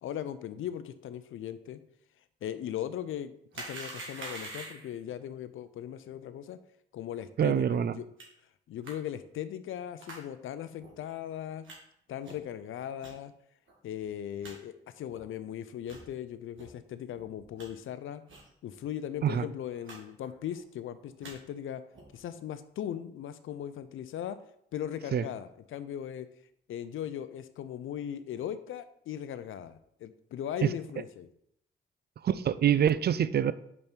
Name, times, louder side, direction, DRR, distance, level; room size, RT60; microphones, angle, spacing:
voice 1, 0.0-1.8 2.4-6.6 6.9-8.1 8.7-11.7 12.1-13.3 13.8-18.2 18.6-21.8 22.1-24.4 24.7-26.3 26.7-31.3, left 10 dB, 70° left, 13 dB, 0.6 m, -38 dB
sound 1, 3.5-5.0 8.2-8.3 8.8-8.9 10.0-10.2 10.8-10.9 11.6-11.8 12.2-12.5 13.0-13.1 13.7-13.8 14.0-14.1 14.4-14.5 15.1-15.2 15.8-16.0 16.5-16.7 17.1-17.7 18.3-18.5 18.8-18.9 19.1-19.3 19.8-20.0 20.2-20.6 21.0-21.3 21.9-22.2, right 2 dB, 65° right, 2.1 m, -45 dB
voice 2, 7.4-7.9 19.2-19.4 25.1-25.2 32.2-33.5, right 9 dB, 50° right, 15 dB, 0.5 m, -25 dB
5.4 x 5.4 x 4.5 m, 0.73 s
supercardioid pair, 50°, 21 cm